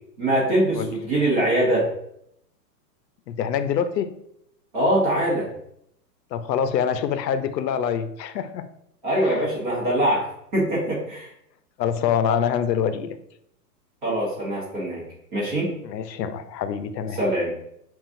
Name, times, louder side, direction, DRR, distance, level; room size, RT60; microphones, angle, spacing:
voice 1, 0.2-1.9 4.7-5.5 9.0-10.3 10.5-11.3 14.0-15.0 15.3-15.7 17.1-17.5, right 1 dB, 30° right, -6 dB, 1.1 m, -23 dB
voice 2, 3.3-4.1 6.3-8.6 9.2-9.5 11.8-13.2 15.8-17.2, left 8 dB, 80° left, 11 dB, 0.6 m, -25 dB
5.6 x 2.4 x 2.5 m, 0.74 s
hypercardioid pair, 175°, 50 cm